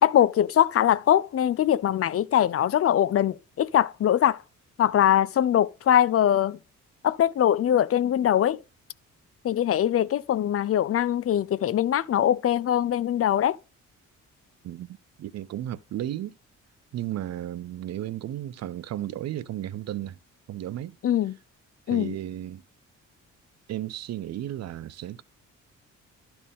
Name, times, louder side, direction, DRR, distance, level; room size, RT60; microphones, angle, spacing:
voice 1, 0.0-4.4 4.8-6.6 7.0-8.6 9.4-13.6 21.0-21.3 21.9-22.1, left 10 dB, 50° left, 0.6 m, -22 dB
voice 2, 15.2-16.3 16.9-20.2 20.5-21.0 21.9-22.6 23.7-25.2, right 12 dB, 60° right, 0.6 m, -34 dB
12.5 x 4.4 x 3.6 m
cardioid pair, 90°, 30 cm